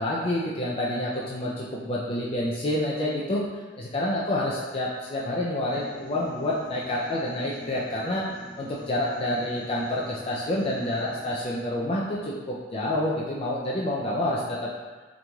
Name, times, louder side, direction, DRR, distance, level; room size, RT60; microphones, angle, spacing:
voice 1, 0.0-3.4 3.8-8.3 8.6-14.7, left 1 dB, 30° left, -5 dB, 0.4 m, -28 dB
sound 1, 5.7-11.4, left 1 dB, 65° right, 1.2 m, -47 dB
3.8 x 3.0 x 2.3 m, 1.3 s
head